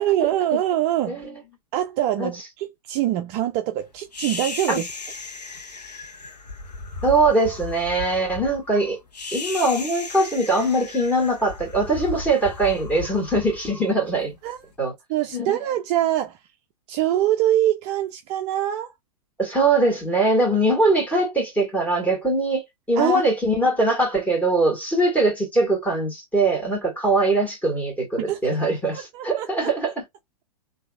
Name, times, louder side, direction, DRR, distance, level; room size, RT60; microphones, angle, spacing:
voice 1, 0.0-1.2 1.7-4.9 14.4-14.6 15.1-16.4 16.9-18.9 23.0-23.2 28.3-28.4 28.9-29.5, right 12 dB, 30° right, 0.4 m, -24 dB
voice 2, 1.1-1.4 2.2-2.3 4.7-4.8 7.0-9.0 9.3-14.3 14.8-14.9 15.3-15.6 19.4-30.0, right 2 dB, 10° left, 2.0 m, -22 dB
sound 1, 4.1-14.5, left 4 dB, 80° left, 1.1 m, -36 dB
3.8 x 2.7 x 2.3 m
figure-of-eight pair, 110°, 21 cm